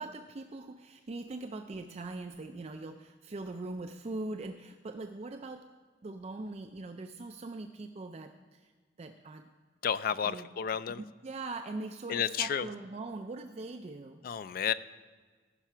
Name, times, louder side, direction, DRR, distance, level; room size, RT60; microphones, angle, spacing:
voice 1, 0.0-5.7 6.0-8.7 9.0-9.5 10.3-10.5 11.2-14.2, right 2 dB, 35° right, 6 dB, 0.4 m, -41 dB
voice 2, 9.8-11.0 12.1-12.7 14.2-14.7, left 8 dB, 50° left, 15 dB, 0.3 m, -31 dB
15.0 x 5.9 x 4.4 m, 1.4 s
head